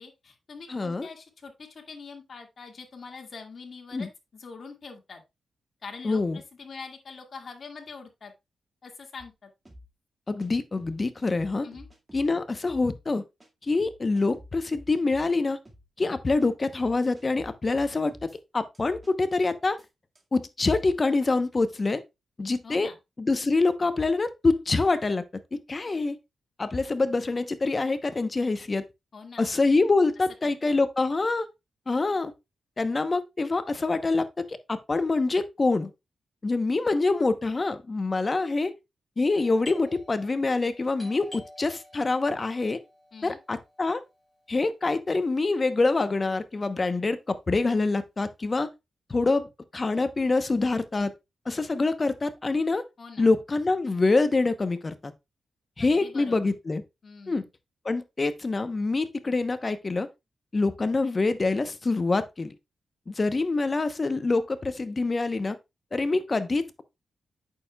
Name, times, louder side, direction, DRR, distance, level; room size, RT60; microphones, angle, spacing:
voice 1, 0.0-5.2 5.8-8.3 8.8-9.5 11.6-11.9 22.6-23.0 29.1-29.7 30.4-30.8 43.1-43.4 53.0-53.2 55.9-56.5 57.0-57.5, left 4 dB, 55° left, 2.0 m, -44 dB
voice 2, 0.7-1.1 3.9-4.1 6.0-6.4 10.3-11.7 12.1-13.2 13.7-15.6 16.0-18.3 18.5-19.8 20.3-22.0 22.4-22.9 23.2-25.2 25.5-26.2 26.6-28.9 29.4-31.5 31.9-32.3 32.8-35.9 36.4-38.7 39.2-42.8 43.2-44.0 44.5-48.7 49.1-51.1 51.5-52.8 53.2-55.1 55.8-56.8 57.3-57.4 57.8-60.1 60.5-62.5 63.1-65.6 65.9-66.8, left 3 dB, 35° left, 0.9 m, -25 dB
sound 1, 9.2-9.3 9.7-9.9 10.4-10.5 10.8-12.3 12.7-12.9 13.4-13.5 13.8-15.3 15.7-15.9 16.4-16.5 16.8-18.4 18.7-19.1 19.4-19.5 19.8-19.9 20.2-20.3, equal, 20° right, 1.9 m, -49 dB
Doorbell, 39.3-44.8, left 2 dB, 15° left, 5.0 m, -50 dB
8.5 x 6.6 x 2.3 m
cardioid pair, 75°, 0 cm